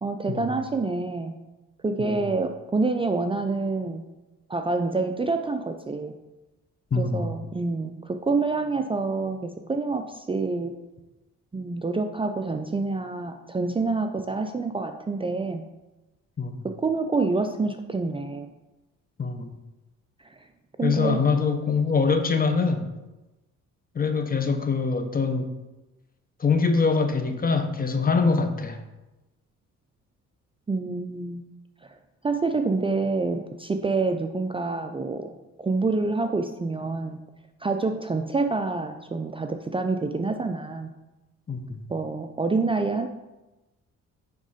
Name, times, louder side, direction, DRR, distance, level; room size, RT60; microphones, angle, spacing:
voice 1, 0.0-1.4 1.8-4.0 4.5-6.1 6.9-10.7 11.5-15.6 16.6-18.5 20.2-20.5 20.8-21.2 30.7-31.5 31.8-32.0 32.2-37.2 37.6-40.9 41.9-43.1, right 3 dB, 20° right, 6 dB, 0.5 m, -27 dB
voice 2, 6.9-7.3 16.4-16.7 19.2-19.5 20.8-22.8 23.9-25.5 26.4-28.8 41.5-41.8, left 4 dB, 30° left, 8 dB, 0.9 m, -24 dB
9.6 x 3.7 x 5.0 m, 1.1 s
cardioid pair, 90°, 30 cm